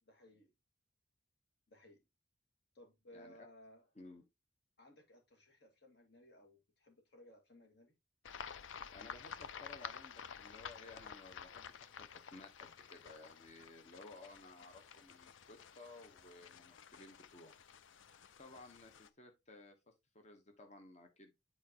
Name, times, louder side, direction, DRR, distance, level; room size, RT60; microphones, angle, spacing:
voice 1, 0.0-0.5 1.7-2.0 2.7-3.9 4.8-7.9, left 1 dB, 60° left, 2.4 m, -61 dB
voice 2, 3.1-3.5 3.9-4.2 8.9-17.6 18.4-21.4, left 2 dB, 35° left, 1.2 m, -57 dB
sound 1, 8.2-19.1, left 7 dB, 80° left, 0.5 m, -52 dB
8.5 x 4.6 x 3.0 m
head